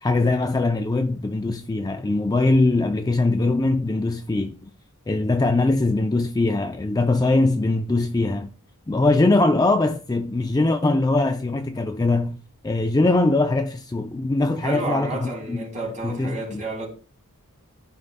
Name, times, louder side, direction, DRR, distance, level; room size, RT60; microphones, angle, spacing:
voice 1, 0.0-4.7 5.1-8.5 8.9-12.4 12.6-15.6 16.0-16.6, left 2 dB, 15° left, 0.4 m, -21 dB
voice 2, 14.6-16.9, right 2 dB, 35° right, 3.9 m, -31 dB
14.5 x 5.2 x 2.2 m
head